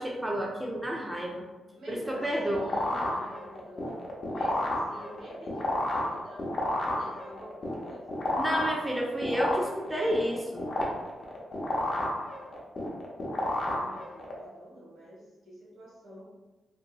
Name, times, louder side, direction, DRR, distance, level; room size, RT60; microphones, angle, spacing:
voice 1, 0.0-1.5 1.9-2.7 8.4-10.7, equal, 10° right, -1 dB, 0.4 m, -30 dB
voice 2, 1.7-8.2 13.7-16.3, equal, 75° right, -7 dB, 1.3 m, -48 dB
sound 1, 2.0-14.4, left 1 dB, 50° left, 0.6 m, -32 dB
2.8 x 2.6 x 2.3 m, 1.1 s
cardioid pair, 70°, 0 cm